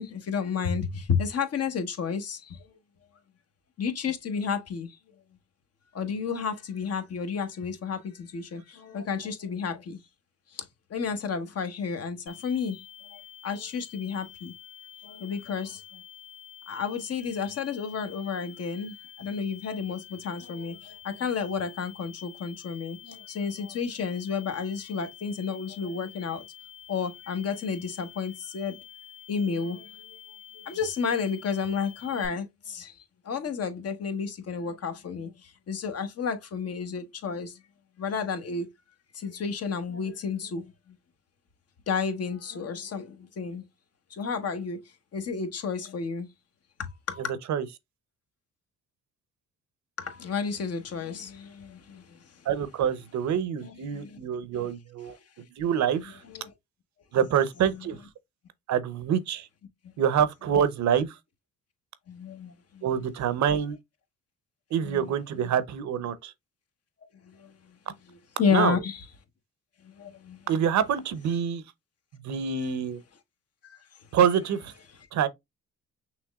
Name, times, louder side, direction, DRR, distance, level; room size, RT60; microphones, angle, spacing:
voice 1, 0.0-2.7 3.8-5.0 5.9-10.0 10.5-12.8 13.1-14.5 15.0-16.0 16.7-26.5 26.9-28.8 29.3-30.0 30.5-32.9 33.2-37.6 38.0-38.7 39.1-40.7 41.9-43.6 44.1-44.8 45.1-46.3 46.8-47.2 50.0-52.2 53.6-54.2 54.6-54.7 56.3-56.5 62.1-62.9 64.8-65.1 67.3-67.5 68.4-69.0 69.8-70.4 73.6-73.9, left 6 dB, 55° left, 1.2 m, -31 dB
sound 1, 12.3-32.3, left 11 dB, 90° left, 2.3 m, -48 dB
voice 2, 52.4-55.2 55.6-56.2 57.1-58.0 58.7-59.5 60.0-61.2 62.8-63.8 64.7-66.3 68.5-68.8 70.5-71.6 72.1-73.0 74.1-74.7 75.1-75.3, right 8 dB, 65° right, 0.8 m, -26 dB
6.1 x 3.1 x 2.3 m
cardioid pair, 90°, 30 cm